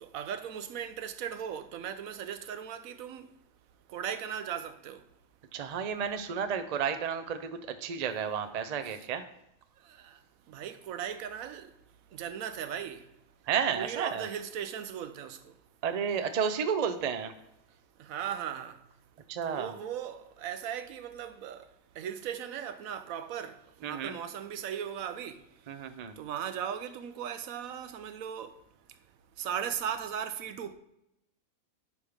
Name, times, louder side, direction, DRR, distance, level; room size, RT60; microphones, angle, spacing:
voice 1, 0.0-3.3 3.9-5.0 8.9-9.0 9.9-10.2 10.5-11.7 12.1-13.0 13.8-15.4 18.0-18.8 19.4-21.6 22.0-25.4 26.2-28.5 29.4-30.7, right 8 dB, 80° right, 1.0 m, -37 dB
voice 2, 5.5-9.2 13.5-14.3 15.8-17.3 19.3-19.7 23.8-24.1 25.7-26.1, right 7 dB, 50° right, 0.5 m, -32 dB
10.5 x 3.6 x 5.0 m
omnidirectional pair, 1.5 m